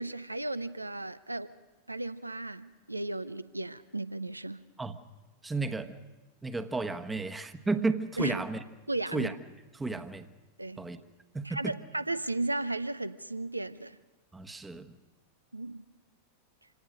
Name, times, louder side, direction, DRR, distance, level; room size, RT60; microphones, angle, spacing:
voice 1, 0.0-1.5 1.9-4.6 8.2-8.4 8.9-9.3 10.6-10.8 11.4-14.0 15.5-15.8, right 2 dB, 85° right, 14 dB, 0.7 m, -35 dB
voice 2, 5.4-6.0 6.4-8.6 9.1-9.3 9.7-10.3 10.8-11.0 11.3-11.7 14.3-14.9, right 3 dB, 10° right, 10 dB, 1.1 m, -33 dB
26.5 x 18.0 x 6.5 m, 1.2 s
figure-of-eight pair, 90°, 0 cm